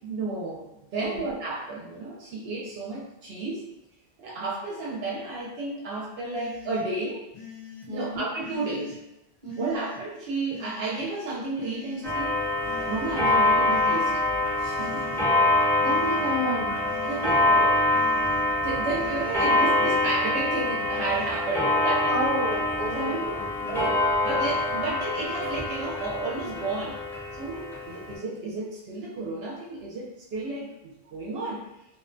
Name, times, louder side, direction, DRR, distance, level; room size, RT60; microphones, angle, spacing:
voice 1, 0.0-3.7 4.2-7.2 7.9-9.0 9.6-12.4 12.9-14.2 14.6-15.2 17.0-17.8 18.6-22.2 22.9-23.4 23.7-27.0 27.3-31.7, right 3 dB, 75° right, -4 dB, 0.8 m, -32 dB
sound 1, 6.3-6.8 7.3-7.9 8.4-9.0 9.5-10.0 10.5-11.0 11.6-12.1 12.6-13.2 13.7-14.2 14.8-15.3 15.8-16.3 16.8-17.4 17.9-18.5 18.9-19.4, left 8 dB, 50° left, 0.4 m, -43 dB
voice 2, 7.9-8.2 9.4-9.7 15.8-16.8 22.1-23.2 23.6-23.9, right 1 dB, 35° right, -5 dB, 0.7 m, -30 dB
Clock, 12.0-28.1, left 2 dB, 5° left, 0.6 m, -25 dB
2.4 x 2.1 x 2.4 m, 0.88 s
omnidirectional pair, 1.1 m